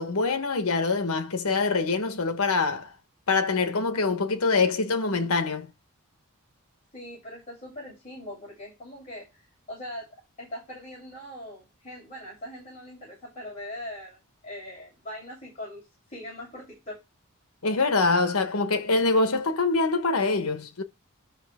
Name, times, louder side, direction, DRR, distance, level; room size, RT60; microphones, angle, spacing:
voice 1, 0.0-2.9 3.3-5.7 17.6-20.8, left 3 dB, 85° left, 1.1 m, -24 dB
voice 2, 6.9-10.1 10.4-17.0, left 1 dB, 30° left, 7.5 m, -41 dB
13.0 x 6.1 x 3.6 m
head